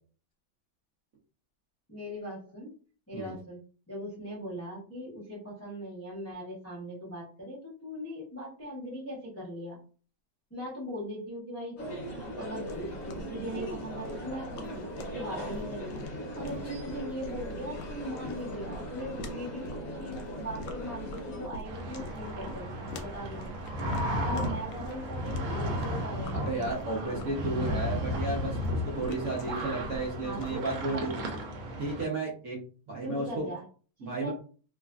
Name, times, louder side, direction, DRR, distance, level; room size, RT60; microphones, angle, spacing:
voice 1, 1.9-2.7 3.1-3.6 3.9-9.8 10.5-11.9 12.2-16.0 16.3-23.5 24.2-27.8 30.2-31.1 33.0-33.6 34.0-34.3, equal, 15° left, -6 dB, 0.4 m, -40 dB
sound 1, 11.8-21.5, equal, 45° left, 0.9 m, -39 dB
sound 2, 12.7-30.7, left 1 dB, 75° left, 1.2 m, -45 dB
sound 3, 21.6-32.0, equal, 80° right, 1.4 m, -34 dB
voice 2, 26.3-31.1 31.8-32.6 32.9-33.5 34.0-34.3, right 2 dB, 60° right, -4 dB, 0.9 m, -33 dB
3.2 x 2.4 x 2.3 m, 0.40 s
omnidirectional pair, 2.2 m